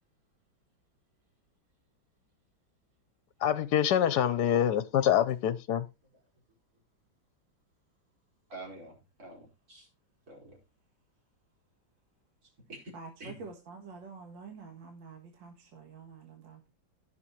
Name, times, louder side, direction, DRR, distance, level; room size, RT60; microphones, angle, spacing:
voice 1, 3.4-5.9, left 10 dB, 70° left, 1.1 m, -26 dB
voice 2, 8.5-9.9 10.3-10.6 12.4-12.9 13.2-13.3, right 2 dB, 50° right, 5.1 m, -47 dB
voice 3, 12.9-16.7, right 4 dB, 75° right, 2.3 m, -47 dB
15.5 x 6.4 x 3.1 m
omnidirectional pair, 2.0 m